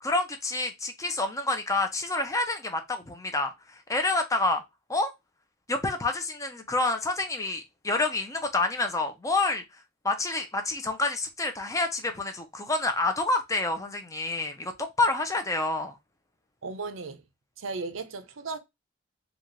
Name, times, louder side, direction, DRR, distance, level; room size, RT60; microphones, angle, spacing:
voice 1, 0.0-3.5 3.9-4.6 4.9-5.1 5.7-9.6 10.0-16.0, left 2 dB, 15° left, 0.7 m, -28 dB
voice 2, 16.6-17.2 17.6-18.6, right 4 dB, 75° right, 0.7 m, -35 dB
4.0 x 2.5 x 3.1 m
head